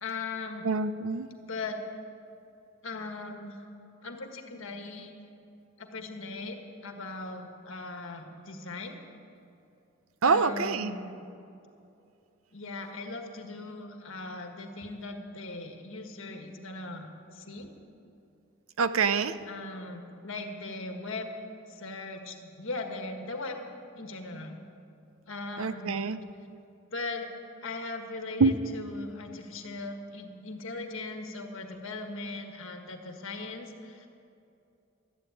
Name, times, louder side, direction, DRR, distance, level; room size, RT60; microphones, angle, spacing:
voice 1, 0.0-0.7 1.4-1.8 2.8-3.6 4.0-5.1 5.8-9.0 10.2-11.2 12.5-17.7 19.5-21.3 21.7-23.6 23.9-24.6 25.3-26.0 26.9-27.3 27.6-34.1, left 3 dB, 65° left, 4 dB, 1.6 m, -39 dB
voice 2, 0.6-1.3 10.2-10.9 18.8-19.4 25.6-26.2 28.4-28.6, right 4 dB, 75° right, 13 dB, 0.6 m, -25 dB
13.5 x 11.0 x 8.6 m, 2.7 s
head